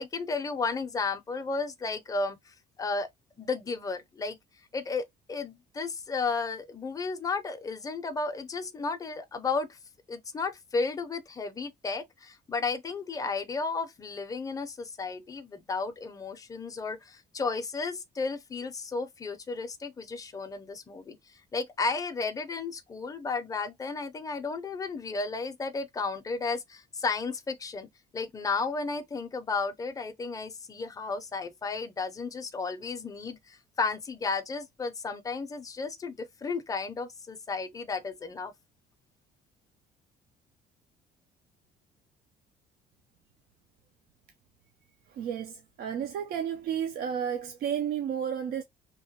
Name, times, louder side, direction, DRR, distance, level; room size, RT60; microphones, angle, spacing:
voice 1, 0.0-3.1 3.4-4.4 4.7-9.8 10.1-21.2 21.5-27.9 28.1-38.5, left 4 dB, 20° left, 0.5 m, -33 dB
voice 2, 45.1-48.6, right 8 dB, 65° right, 0.5 m, -32 dB
2.9 x 2.1 x 2.8 m
cardioid pair, 110°, 17 cm